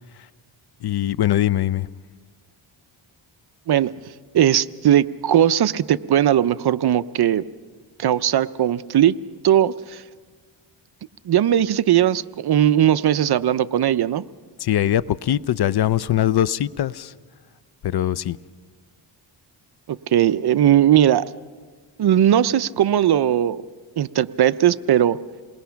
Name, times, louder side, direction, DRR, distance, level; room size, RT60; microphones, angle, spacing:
voice 1, 0.8-1.9 14.6-17.1 17.8-18.4, left 12 dB, 50° left, 0.6 m, -22 dB
voice 2, 4.3-7.5 8.0-9.2 9.4-10.0 11.3-14.2 19.9-21.2 22.0-23.6 24.0-25.2, right 11 dB, 50° right, 0.6 m, -18 dB
28.0 x 20.5 x 5.8 m
cardioid pair, 85°, 50 cm